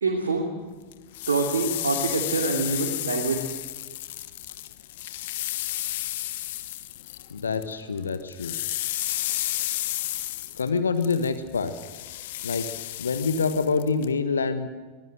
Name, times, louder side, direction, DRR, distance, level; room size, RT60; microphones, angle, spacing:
voice 1, 0.0-0.5 1.3-3.4, right 3 dB, 70° right, 1 dB, 3.0 m, -25 dB
sound 1, 0.9-7.7 8.0-14.1, left 15 dB, 55° left, 1.3 m, -32 dB
voice 2, 7.3-8.5 10.5-11.7 12.4-12.7 13.0-14.7, left 5 dB, 70° left, 10 dB, 1.4 m, -26 dB
24.0 x 18.0 x 7.8 m, 1.4 s
figure-of-eight pair, 90°, 0 cm